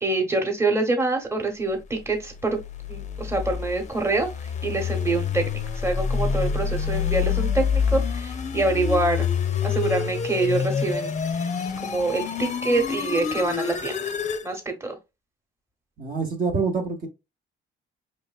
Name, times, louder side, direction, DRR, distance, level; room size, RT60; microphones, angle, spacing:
voice 1, 0.0-2.6 2.9-4.3 4.6-5.4 5.8-9.3 9.6-11.1 11.8-14.1 14.4-15.0, right 2 dB, 15° right, 1.0 m, -25 dB
sound 1, 2.3-14.5, left 6 dB, 35° left, 0.5 m, -27 dB
voice 2, 16.0-17.1, right 4 dB, 45° right, 0.9 m, -26 dB
4.5 x 3.1 x 2.3 m
cardioid pair, 90°, 20 cm